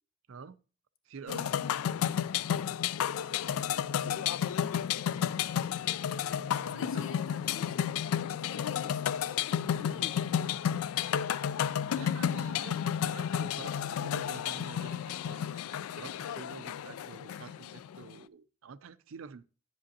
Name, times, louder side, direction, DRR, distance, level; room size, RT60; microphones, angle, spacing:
voice 1, 1.1-1.6 6.6-7.1 11.9-12.8 13.0-19.4, right 5 dB, 70° right, 0.5 m, -48 dB
sound 1, 1.3-18.1, left 9 dB, 85° left, 0.3 m, -32 dB
voice 2, 1.6-2.0 3.0-6.0 6.4-8.0 8.3-12.3, left 5 dB, 65° left, 0.9 m, -50 dB
9.8 x 7.7 x 2.7 m
head